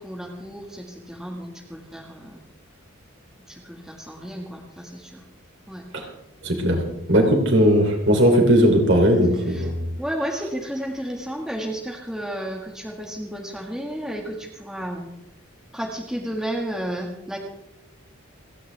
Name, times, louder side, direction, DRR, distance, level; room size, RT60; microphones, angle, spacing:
voice 1, 0.0-2.4 3.5-5.2 5.7-5.8 9.4-9.7 10.0-15.1 15.7-17.4, right 1 dB, 5° right, 0 dB, 1.6 m, -32 dB
voice 2, 6.4-6.8 7.1-9.9, equal, 55° right, 2 dB, 3.1 m, -18 dB
29.0 x 10.0 x 3.4 m, 0.85 s
head